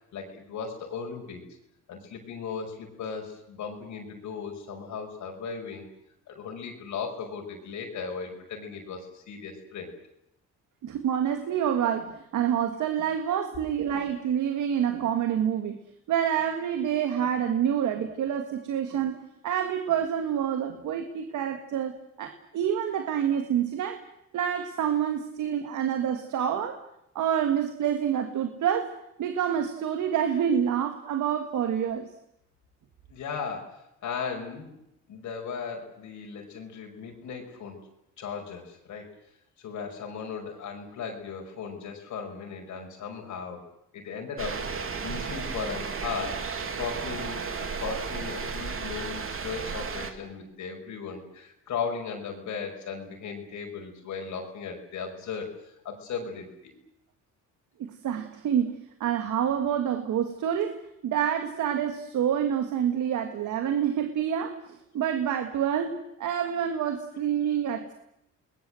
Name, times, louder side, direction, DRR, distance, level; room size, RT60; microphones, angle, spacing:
voice 1, 0.1-1.4 1.9-5.9 6.3-9.9 33.1-34.7 35.1-37.8 38.2-39.1 39.6-43.7 43.9-44.6 45.0-46.4 46.8-56.7, left 6 dB, 75° left, 2 dB, 5.7 m, -37 dB
voice 2, 10.8-15.8 16.1-19.2 19.4-24.0 24.3-26.8 27.2-28.9 29.2-32.1 57.8-60.8 61.0-67.9, right 9 dB, 75° right, 6 dB, 2.0 m, -27 dB
sound 1, 44.4-50.1, right 5 dB, 45° right, 3.1 m, -34 dB
29.0 x 20.5 x 7.8 m, 0.80 s
cardioid pair, 90°, 30 cm